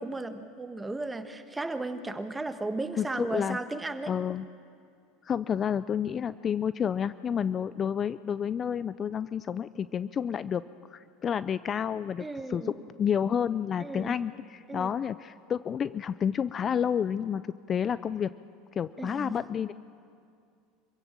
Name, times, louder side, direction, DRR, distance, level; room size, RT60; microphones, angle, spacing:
voice 1, 0.0-4.1 12.2-12.7 13.8-14.1 14.7-14.9 19.0-19.3, right 2 dB, 10° right, 9 dB, 1.4 m, -35 dB
voice 2, 3.0-3.6 4.1-4.5 5.2-10.6 10.9-17.4 17.7-18.3 18.8-19.7, left 8 dB, 30° left, 15 dB, 0.4 m, -30 dB
25.5 x 16.0 x 7.4 m, 2.4 s
supercardioid pair, 120°, 0 cm